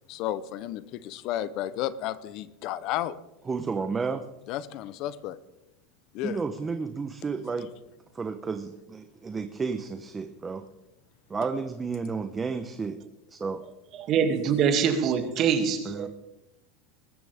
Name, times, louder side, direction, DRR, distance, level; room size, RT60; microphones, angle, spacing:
voice 1, 0.1-3.2 4.5-5.4 6.1-6.4, left 12 dB, 50° left, 0.8 m, -32 dB
voice 2, 3.5-4.2 6.2-7.7 8.1-10.6 11.3-13.0 13.3-13.6 15.9-16.1, right 4 dB, 15° right, 0.9 m, -32 dB
voice 3, 13.9-16.1, right 7 dB, 40° right, 2.5 m, -24 dB
21.5 x 14.0 x 3.6 m
supercardioid pair, 135°, 0 cm